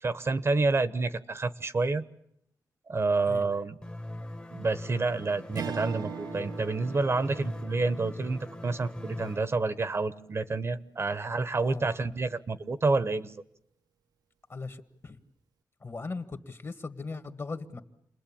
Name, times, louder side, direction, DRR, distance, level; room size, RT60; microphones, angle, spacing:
voice 1, 0.0-2.0 2.9-3.8 4.5-13.3, right 3 dB, 40° right, 13 dB, 1.0 m, -29 dB
sound 1, 3.8-9.4, left 1 dB, 15° left, 1.2 m, -41 dB
Strum, 5.5-10.2, right 8 dB, 75° right, 1.0 m, -42 dB
voice 2, 11.6-11.9 14.5-15.2 15.8-17.8, left 3 dB, 40° left, 9 dB, 1.8 m, -39 dB
29.0 x 21.0 x 8.8 m, 0.75 s
wide cardioid pair, 100°, 7 cm